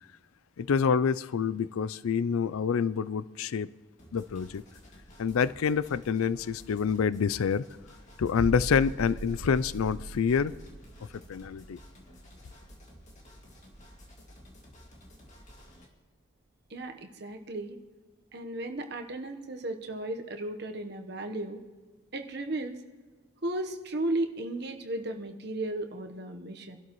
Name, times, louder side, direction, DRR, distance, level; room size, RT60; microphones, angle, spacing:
voice 1, 0.6-3.7 4.1-4.6 5.2-7.6 8.2-10.5 11.1-11.8, left 6 dB, 85° left, 0.4 m, -27 dB
sound 1, 4.0-15.9, equal, 35° left, 2.2 m, -53 dB
sound 2, 8.4-14.1 14.3-14.6, right 2 dB, 30° right, 0.4 m, -41 dB
voice 2, 16.7-17.8 18.3-21.6 22.1-22.8 23.4-26.8, right 1 dB, 50° right, 1.1 m, -35 dB
24.5 x 12.0 x 3.1 m
head